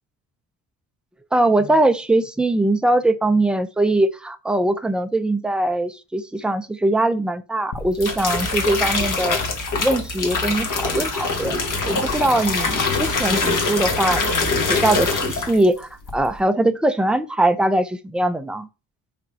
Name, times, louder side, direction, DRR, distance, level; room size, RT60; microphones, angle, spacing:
voice 1, 1.3-9.4 9.8-11.6 11.9-18.7, right 1 dB, 5° right, 0.4 m, -21 dB
sound 1, 7.7-15.7 16.0-16.4, left 3 dB, 50° left, 1.4 m, -23 dB
5.9 x 5.1 x 4.3 m
wide cardioid pair, 170°, 39 cm